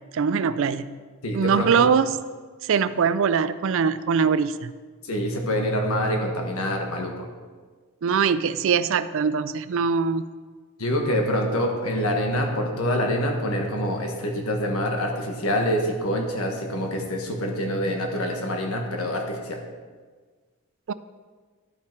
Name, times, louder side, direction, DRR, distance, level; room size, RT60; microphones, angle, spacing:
voice 1, 0.1-1.0 1.3-2.2 2.6-4.7 8.0-10.3 20.9-21.0, right 6 dB, 60° right, 15 dB, 0.4 m, -22 dB
voice 2, 1.2-1.9 5.0-7.3 10.8-19.6, equal, 75° left, 2 dB, 1.5 m, -26 dB
12.0 x 5.7 x 4.6 m, 1.5 s
head